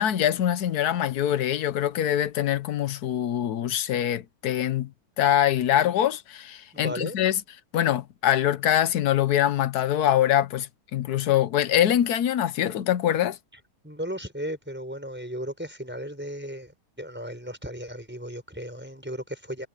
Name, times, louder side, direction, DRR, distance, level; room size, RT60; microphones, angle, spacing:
voice 1, 0.0-4.9 5.2-7.4 7.7-13.4, left 11 dB, 65° left, 1.3 m, -24 dB
voice 2, 6.7-7.2 13.8-19.7, equal, 5° right, 5.0 m, -35 dB
omnidirectional pair, 1.8 m